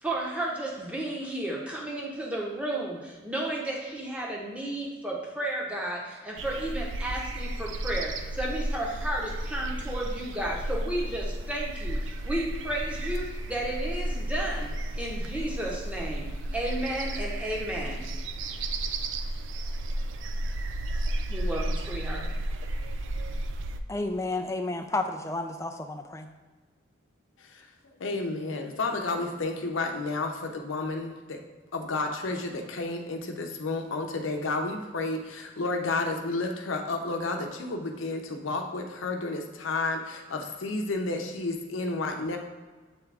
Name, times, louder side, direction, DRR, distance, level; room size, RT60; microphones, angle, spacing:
voice 1, 0.0-18.0 21.3-22.3, right 1 dB, 5° right, -3 dB, 0.9 m, -33 dB
sound 1, 6.4-23.8, right 1 dB, 75° right, 0.4 m, -33 dB
voice 2, 23.9-26.3, left 2 dB, 15° left, 5 dB, 0.4 m, -31 dB
voice 3, 28.0-31.4 31.7-42.4, left 3 dB, 85° left, 3 dB, 0.7 m, -31 dB
7.8 x 3.6 x 3.4 m, 1.4 s
head